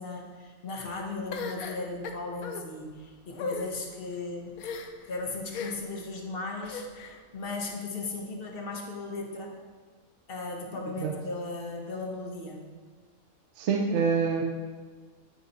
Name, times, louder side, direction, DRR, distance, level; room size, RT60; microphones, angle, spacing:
voice 1, 0.0-4.6 5.1-6.8 7.3-9.5 10.3-12.6, left 3 dB, 45° left, 0 dB, 1.1 m, -36 dB
sound 1, 1.3-2.6 3.3-3.7 4.6-5.1 5.5-6.0 6.6-7.2, left 5 dB, 85° left, 1.0 m, -38 dB
voice 2, 13.6-14.4, right 5 dB, 65° right, 3 dB, 0.8 m, -26 dB
9.0 x 4.0 x 4.0 m, 1.5 s
omnidirectional pair, 1.4 m